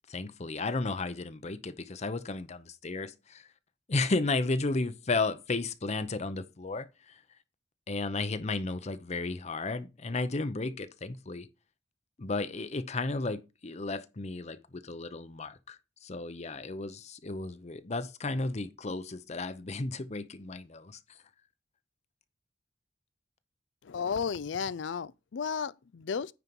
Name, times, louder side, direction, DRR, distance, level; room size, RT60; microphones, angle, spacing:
voice 1, 0.1-3.4 3.9-7.2 7.9-11.5 12.2-21.0, left 3 dB, 35° left, 0.7 m, -33 dB
voice 2, 23.8-26.3, left 6 dB, 80° left, 0.4 m, -33 dB
9.6 x 4.5 x 5.3 m
head